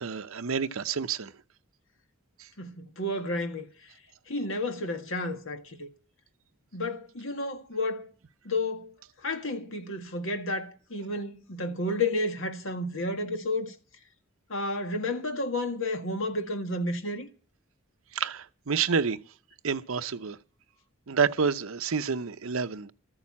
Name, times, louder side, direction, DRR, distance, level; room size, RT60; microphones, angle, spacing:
voice 1, 0.0-1.3 18.1-19.2 19.6-20.4 21.1-22.9, right 6 dB, 70° right, 0.7 m, -28 dB
voice 2, 2.6-3.7 4.3-5.9 6.7-8.1 8.4-13.7 14.5-17.3, left 2 dB, 65° left, 1.8 m, -31 dB
13.5 x 8.8 x 8.5 m
head